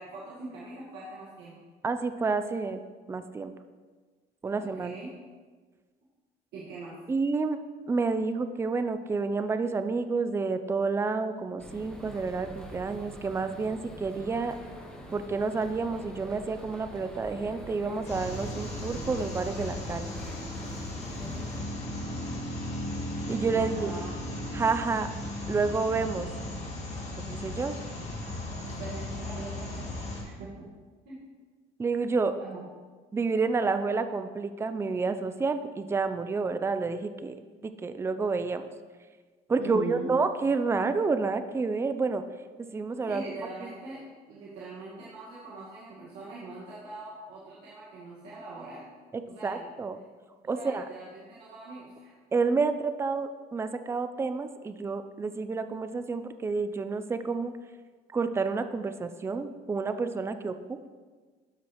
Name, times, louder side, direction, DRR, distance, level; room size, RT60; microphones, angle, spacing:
voice 1, 0.0-1.5 4.6-5.1 6.5-6.9 23.5-24.1 28.6-30.7 31.0-31.2 32.4-32.6 39.6-40.1 43.0-44.0 44.3-48.9 49.3-49.7 50.5-52.2, right 3 dB, 85° right, -8 dB, 1.6 m, -42 dB
voice 2, 1.8-2.8 3.1-3.5 4.4-4.9 7.1-7.6 7.9-14.6 15.1-20.1 23.3-23.9 24.5-25.1 25.5-26.3 27.3-27.8 31.8-32.4 33.1-38.7 39.5-42.2 42.7-43.2 49.1-50.0 50.5-50.9 52.3-57.5 58.1-60.9, right 4 dB, 15° right, 10 dB, 0.4 m, -29 dB
sound 1, 11.6-21.6, right 1 dB, 5° left, 1.2 m, -45 dB
sound 2, 18.0-30.2, left 1 dB, 40° left, 2.0 m, -36 dB
12.5 x 4.8 x 3.0 m, 1.4 s
cardioid pair, 110°, 17 cm